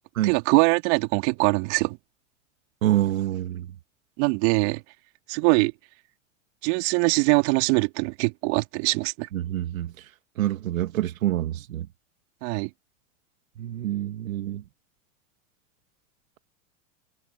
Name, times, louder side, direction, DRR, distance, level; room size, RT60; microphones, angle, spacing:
voice 1, 0.2-2.0 4.2-4.8 5.3-5.7 6.6-9.3 12.4-12.7, right 30 dB, 60° right, 3.2 m, -22 dB
voice 2, 2.8-3.7 9.3-10.1 10.4-11.9 13.6-14.6, right 13 dB, 80° right, 2.9 m, -27 dB
hypercardioid pair, 110°, 40 cm